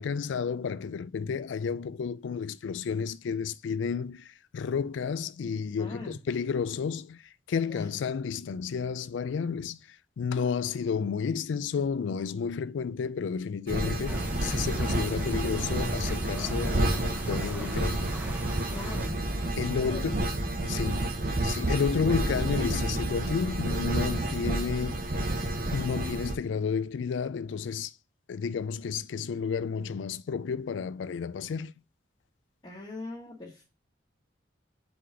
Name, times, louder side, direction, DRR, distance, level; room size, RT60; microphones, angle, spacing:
voice 1, 0.0-7.2 7.5-9.8 10.2-18.1 19.6-20.2 20.6-21.1 21.4-25.0 25.7-27.9 28.3-31.7, left 6 dB, 90° left, 0.4 m, -31 dB
voice 2, 5.8-6.2 7.6-7.9 18.7-19.2 19.8-20.1 20.8-21.1 32.6-33.6, left 2 dB, 25° left, 1.1 m, -41 dB
sound 1, 13.7-26.3, right 1 dB, 50° right, 1.0 m, -30 dB
sound 2, 14.1-19.1, right 1 dB, 10° right, 0.6 m, -41 dB
4.9 x 3.8 x 5.6 m
head